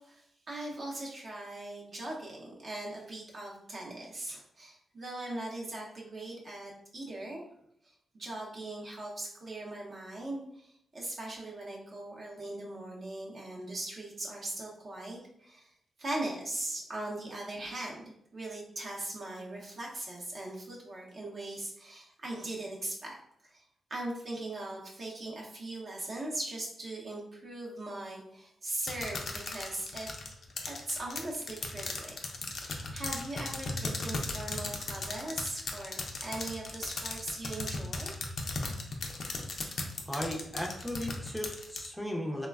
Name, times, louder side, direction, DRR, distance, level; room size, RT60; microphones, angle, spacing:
voice 1, 0.0-7.4 7.8-15.7 16.0-23.2 23.5-23.6 23.9-30.1 30.6-38.1, right 2 dB, 50° right, -3 dB, 0.6 m, -40 dB
sound 1, 28.9-41.9, left 3 dB, 60° left, 0.4 m, -36 dB
voice 2, 40.1-42.5, equal, ahead, -1 dB, 0.5 m, -36 dB
3.1 x 2.1 x 2.3 m, 0.73 s
cardioid pair, 95°, 0 cm